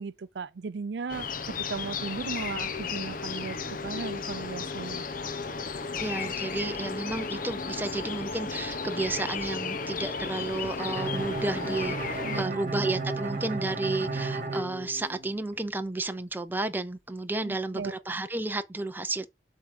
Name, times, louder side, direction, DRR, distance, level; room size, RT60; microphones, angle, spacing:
voice 1, 0.0-5.1 12.2-12.7 17.5-17.9, right 4 dB, 70° right, 0.5 m, -37 dB
sound 1, 1.1-12.4, left 4 dB, 50° left, 0.8 m, -34 dB
voice 2, 5.8-19.3, right 2 dB, 10° right, 0.6 m, -32 dB
Bowed string instrument, 10.8-15.6, right 3 dB, 45° right, 1.8 m, -33 dB
7.9 x 3.8 x 6.7 m
head